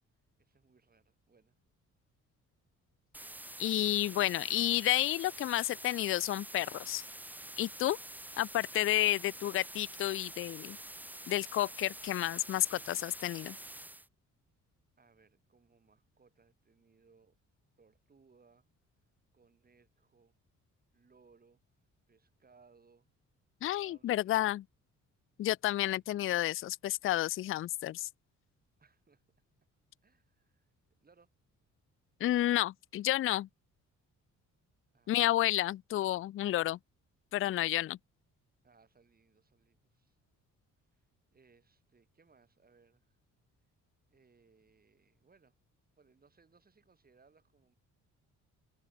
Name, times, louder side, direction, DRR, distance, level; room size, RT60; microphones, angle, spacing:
voice 1, 0.4-1.6 15.0-17.4 17.8-18.7 19.3-20.4 20.9-21.6 22.1-23.1 23.8-24.6 25.9-26.0 28.8-29.2 30.0-30.7 31.0-31.3 34.9-35.3 38.6-40.2 40.9-43.2 44.1-45.6 46.0-47.8, right 4 dB, 30° right, 8.0 m, -66 dB
sound 1, 3.1-14.1, right 1 dB, 5° right, 2.2 m, -47 dB
voice 2, 3.6-7.0 7.6-8.0 8.4-10.8 11.3-13.6 23.6-24.6 25.4-28.1 32.2-33.5 35.1-36.8 37.3-38.0, left 14 dB, 45° left, 0.4 m, -31 dB
cardioid pair, 115°, 30 cm